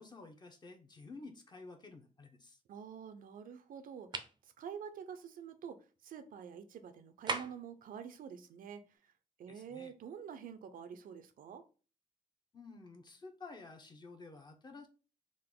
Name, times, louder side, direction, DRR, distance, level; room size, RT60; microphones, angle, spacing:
voice 1, 0.0-2.6 9.5-9.9 12.5-14.9, left 3 dB, 30° left, 5 dB, 0.8 m, -52 dB
voice 2, 2.7-9.1 9.4-11.6, right 7 dB, 80° right, 9 dB, 0.5 m, -48 dB
sound 1, 4.1-4.4 7.3-7.7, right 3 dB, 30° right, 0.5 m, -37 dB
3.7 x 2.5 x 3.7 m, 0.35 s
wide cardioid pair, 120°, 14 cm